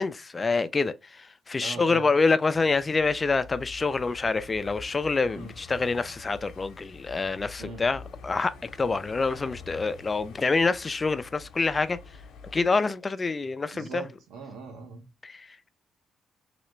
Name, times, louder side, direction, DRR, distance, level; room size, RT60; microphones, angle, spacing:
voice 1, 0.0-12.0 12.5-14.0 15.2-15.7, left 4 dB, 30° left, 0.4 m, -26 dB
voice 2, 1.6-2.1 5.3-5.5 7.6-7.8 13.7-15.1, right 4 dB, 85° right, 1.2 m, -40 dB
sound 1, 2.5-12.7, left 5 dB, 75° left, 0.8 m, -47 dB
3.2 x 3.0 x 3.1 m
cardioid pair, 90°, 0 cm